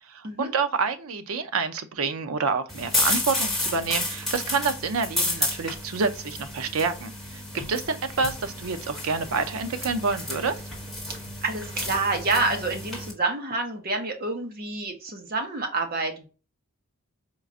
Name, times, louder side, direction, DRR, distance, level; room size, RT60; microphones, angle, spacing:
voice 1, 0.1-7.4 7.7-10.6, right 4 dB, 75° right, 0.5 m, -28 dB
sound 1, 2.7-13.1, left 1 dB, ahead, 1.3 m, -31 dB
voice 2, 11.4-16.3, right 3 dB, 45° right, 0.9 m, -28 dB
4.5 x 2.4 x 2.4 m
head